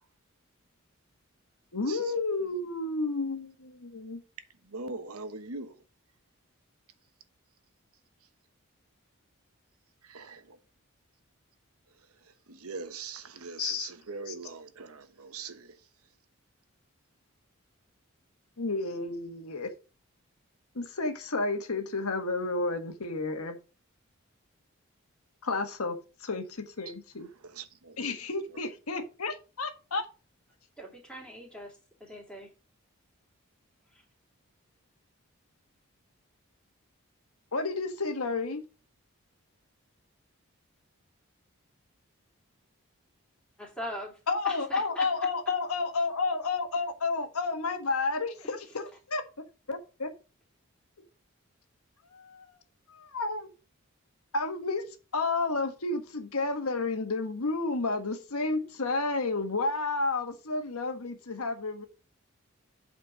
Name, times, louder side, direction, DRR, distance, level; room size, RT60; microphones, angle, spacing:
voice 1, 1.7-4.2 13.6-13.9 14.3-14.4 18.6-19.7 20.7-23.6 25.4-27.3 28.0-30.0 37.5-38.6 44.3-49.2 49.7-50.1 52.1-52.4 52.9-53.5 54.3-54.8 55.1-61.8, left 3 dB, 85° left, 1.4 m, -31 dB
voice 2, 4.7-5.8 10.0-10.6 12.5-15.7 27.4-28.0, right 4 dB, 85° right, 1.1 m, -41 dB
voice 3, 30.8-32.5 33.9-34.0 43.6-45.1 48.4-48.5, equal, 5° left, 2.8 m, -41 dB
8.4 x 4.4 x 6.3 m
head